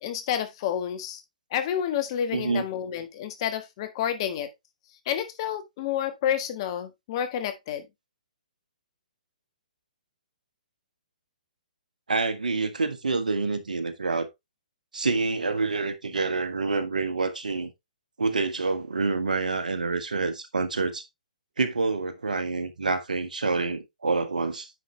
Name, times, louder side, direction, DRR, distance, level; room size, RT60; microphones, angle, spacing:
voice 1, 0.0-1.2 1.5-4.5 5.0-7.9, left 9 dB, 40° left, 1.5 m, -29 dB
voice 2, 2.3-2.6 12.1-14.3 14.9-17.7 18.2-21.0 21.6-24.7, right 3 dB, 80° right, 1.4 m, -27 dB
9.5 x 5.6 x 3.1 m
figure-of-eight pair, 130°, 4 cm